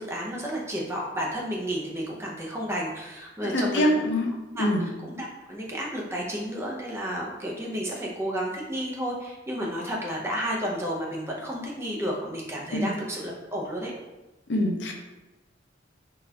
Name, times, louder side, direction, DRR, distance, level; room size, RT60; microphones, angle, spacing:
voice 1, 0.0-4.1 4.6-4.7 5.0-13.9, equal, 15° right, -3 dB, 0.5 m, -32 dB
voice 2, 3.4-4.3 4.6-4.9 12.7-12.9 14.5-14.9, left 1 dB, 70° left, 1 dB, 0.6 m, -24 dB
3.9 x 2.4 x 2.7 m, 1.1 s
head